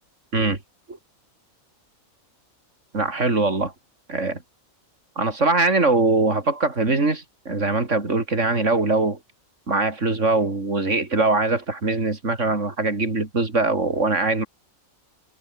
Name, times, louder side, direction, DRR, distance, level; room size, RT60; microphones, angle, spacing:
voice 1, 2.9-3.7 4.1-4.4 5.2-9.2 9.7-14.5, right 3 dB, 60° right, 3.7 m, -22 dB
omnidirectional pair, 1.4 m